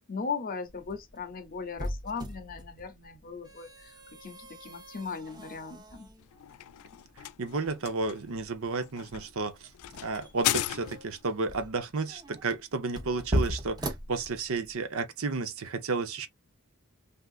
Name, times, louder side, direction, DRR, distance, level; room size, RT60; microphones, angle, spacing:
voice 1, 0.1-6.1, left 5 dB, 40° left, 0.7 m, -38 dB
sound 1, 0.7-14.8, equal, 20° right, 0.7 m, -39 dB
sound 2, 6.2-11.3, left 14 dB, 90° left, 0.3 m, -36 dB
voice 2, 7.2-9.7 10.0-16.3, right 3 dB, 70° right, 0.7 m, -32 dB
3.5 x 2.7 x 2.4 m
head